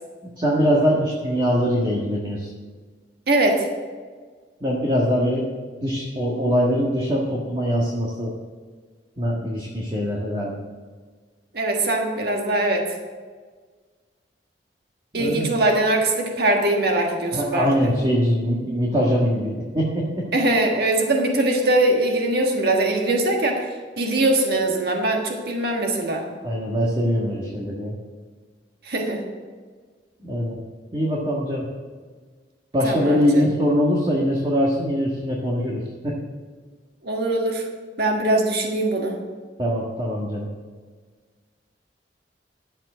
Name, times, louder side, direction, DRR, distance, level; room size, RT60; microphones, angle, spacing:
voice 1, 0.4-2.5 4.6-5.4 5.8-8.3 9.2-10.5 15.2-15.6 17.3-20.2 26.4-27.9 30.2-30.6 30.9-31.6 32.7-36.2 39.6-40.5, equal, 30° right, -3 dB, 1.6 m, -22 dB
voice 2, 3.3-3.7 11.5-12.8 15.1-17.9 20.3-23.6 24.0-26.2 28.8-29.2 32.8-33.5 37.0-37.7 38.0-39.2, right 2 dB, 65° right, 2 dB, 1.6 m, -22 dB
11.5 x 7.5 x 6.2 m, 1.5 s
head